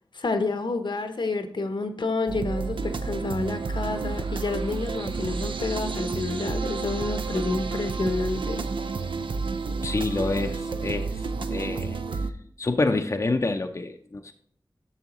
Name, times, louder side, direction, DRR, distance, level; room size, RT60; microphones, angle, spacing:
voice 1, 0.1-8.6, left 3 dB, 70° left, 8 dB, 0.8 m, -29 dB
sound 1, 2.3-12.3, right 4 dB, 85° right, 0.5 m, -30 dB
voice 2, 9.8-11.1 11.5-12.0 12.6-14.3, left 3 dB, 40° left, 5 dB, 0.5 m, -27 dB
10.5 x 7.0 x 3.0 m, 0.63 s
wide cardioid pair, 70°, 8 cm